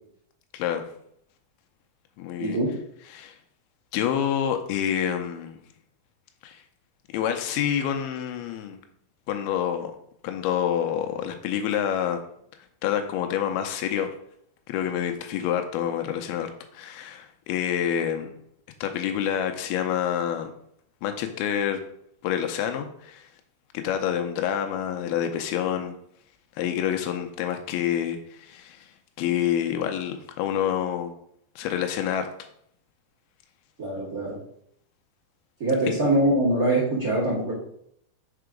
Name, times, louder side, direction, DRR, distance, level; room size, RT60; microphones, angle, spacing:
voice 1, 2.2-2.6 3.1-3.3 3.9-5.6 6.4-6.6 7.1-8.8 9.3-9.9 10.2-12.2 12.8-14.1 14.7-18.3 18.8-20.5 21.0-21.8 22.2-23.2 23.8-26.0 26.6-28.9 29.2-31.1 31.6-32.3, left 9 dB, 90° left, 5 dB, 2.5 m, -27 dB
voice 2, 33.8-34.4 35.6-37.5, right 1 dB, 30° right, -6 dB, 1.8 m, -23 dB
5.9 x 4.6 x 5.0 m, 0.69 s
omnidirectional pair, 4.4 m